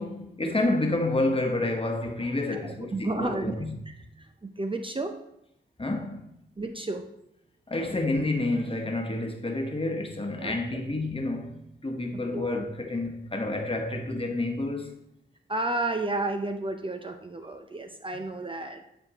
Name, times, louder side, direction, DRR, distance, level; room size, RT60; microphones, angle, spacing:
voice 1, 0.0-3.7 5.8-6.3 7.7-14.9, left 2 dB, 25° left, 1.2 m, -29 dB
voice 2, 2.5-3.6 3.9-5.2 6.6-7.0 10.4-10.8 12.3-12.5 15.5-18.8, right 2 dB, 25° right, 0.6 m, -32 dB
9.3 x 4.4 x 3.0 m
cardioid pair, 40°, 20 cm